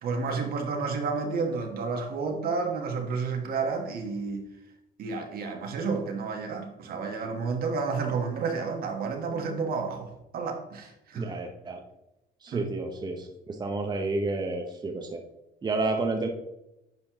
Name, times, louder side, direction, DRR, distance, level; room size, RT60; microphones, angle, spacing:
voice 1, 0.0-4.4 5.0-11.3 12.5-12.7, right 4 dB, 60° right, 3 dB, 1.4 m, -31 dB
voice 2, 11.1-11.8 12.4-15.2 15.6-16.3, right 3 dB, 25° right, 3 dB, 0.9 m, -30 dB
10.5 x 4.2 x 3.0 m, 0.89 s
cardioid pair, 110°, 17 cm